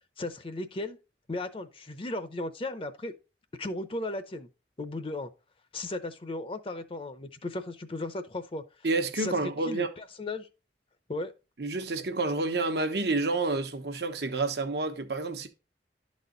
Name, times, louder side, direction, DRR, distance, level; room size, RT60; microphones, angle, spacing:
voice 1, 0.2-1.0 1.3-3.1 3.6-4.5 4.8-5.3 5.7-8.6 9.2-9.3 9.7-10.5 11.1-11.3, left 2 dB, 30° left, 0.6 m, -35 dB
voice 2, 8.8-9.9 11.6-15.5, right 3 dB, 70° right, 1.0 m, -29 dB
11.5 x 4.2 x 3.8 m
head